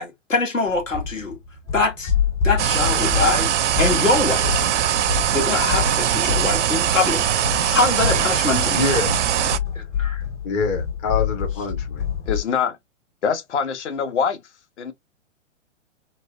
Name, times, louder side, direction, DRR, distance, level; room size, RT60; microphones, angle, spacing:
voice 1, 0.0-1.4 1.7-2.1 2.4-4.7 5.3-7.2 7.5-8.8 9.7-10.2, left 3 dB, 90° left, 1.1 m, -23 dB
sound 1, 0.7-12.4, left 7 dB, 40° left, 1.1 m, -27 dB
sound 2, 2.6-9.6, right 10 dB, 70° right, 0.5 m, -21 dB
voice 2, 8.7-9.2 10.4-12.0, left 4 dB, 15° left, 0.4 m, -25 dB
voice 3, 12.3-12.8 13.2-14.4 14.8-14.9, left 6 dB, 65° left, 0.8 m, -24 dB
3.1 x 2.1 x 2.5 m
figure-of-eight pair, 115°, 38 cm